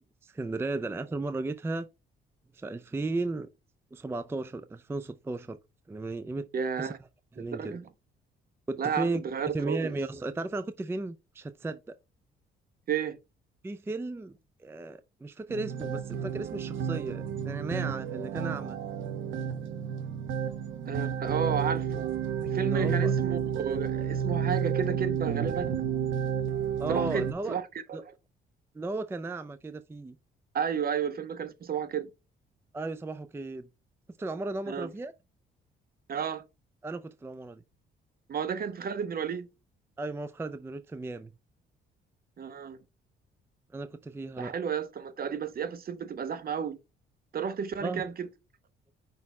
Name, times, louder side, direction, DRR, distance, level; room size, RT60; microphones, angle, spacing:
voice 1, 0.2-1.9 2.5-3.5 3.9-5.6 5.9-6.5 6.8-6.9 7.4-7.8 8.7-9.2 9.5-12.0 13.6-18.8 22.6-23.1 26.8-27.6 27.9-28.0 28.7-30.2 32.7-33.7 34.2-35.1 36.8-37.6 40.0-41.3 43.7-44.5 47.8-48.0, right 2 dB, 10° right, 0.4 m, -35 dB
voice 2, 6.5-7.0 7.4-7.8 8.8-9.9 12.9-13.2 20.9-22.1 22.4-25.8 26.9-27.6 27.9-28.1 30.5-32.1 34.7-34.9 36.1-36.4 38.3-39.5 42.4-42.8 44.4-46.8 47.3-48.3, right 7 dB, 50° right, 0.9 m, -32 dB
sound 1, 15.5-27.3, right 8 dB, 80° right, 0.9 m, -31 dB
5.3 x 4.2 x 4.2 m
cardioid pair, 90°, 20 cm